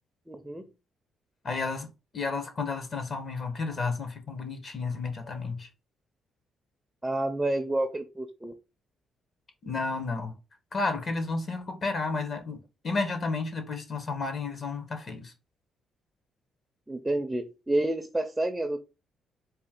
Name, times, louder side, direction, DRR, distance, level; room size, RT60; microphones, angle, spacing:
voice 1, 0.3-0.7 7.0-8.5 16.9-18.8, right 1 dB, 10° right, 0.5 m, -29 dB
voice 2, 1.4-1.9 2.1-5.7 9.6-10.3 10.7-15.3, left 3 dB, 45° left, 1.2 m, -32 dB
4.2 x 2.4 x 3.7 m
cardioid pair, 90°, 0 cm